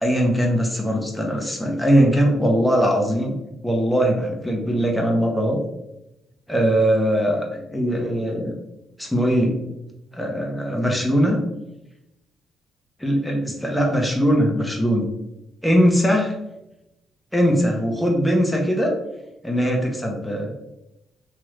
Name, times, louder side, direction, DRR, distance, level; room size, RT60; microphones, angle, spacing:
voice 1, 0.0-3.4 3.6-5.6 6.5-8.6 9.0-9.6 10.1-11.4 13.0-15.1 15.6-16.4 17.3-18.9 19.4-20.5, equal, 5° left, 0 dB, 0.6 m, -20 dB
3.0 x 2.4 x 3.1 m, 0.88 s
cardioid pair, 90°, 0 cm